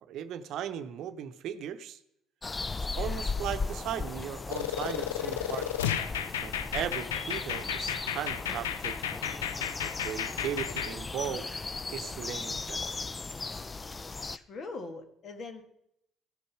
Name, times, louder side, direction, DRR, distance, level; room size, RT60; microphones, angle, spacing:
voice 1, 0.0-2.0 2.8-5.7 6.4-9.0 9.8-11.5 11.9-13.1, right 9 dB, 65° right, 10 dB, 0.7 m, -37 dB
sound 1, 2.4-14.4, left 3 dB, 25° left, 0.4 m, -37 dB
sound 2, 4.5-10.9, left 9 dB, 90° left, 0.5 m, -33 dB
voice 2, 14.3-15.6, left 3 dB, 55° left, 6 dB, 1.6 m, -41 dB
15.5 x 5.4 x 5.8 m, 0.78 s
hypercardioid pair, 55°, 0 cm